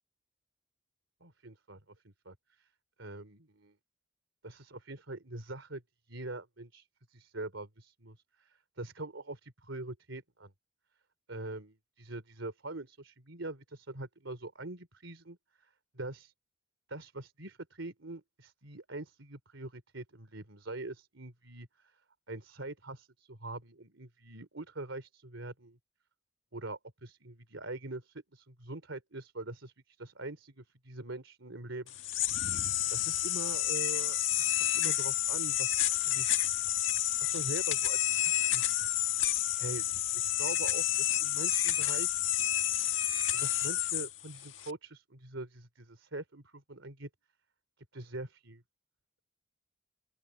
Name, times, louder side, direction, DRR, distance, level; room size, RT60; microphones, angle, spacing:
voice 1, 1.2-2.7 3.0-3.7 4.4-5.8 6.1-10.5 11.3-16.3 16.9-22.0 22.3-25.8 26.5-32.0 32.9-36.4 37.2-38.8 39.6-42.5 43.3-47.1 47.9-48.6, right 2 dB, 90° right, 3.5 m, -43 dB
sound 1, 31.9-44.7, left 13 dB, 85° left, 1.7 m, -30 dB
open air
head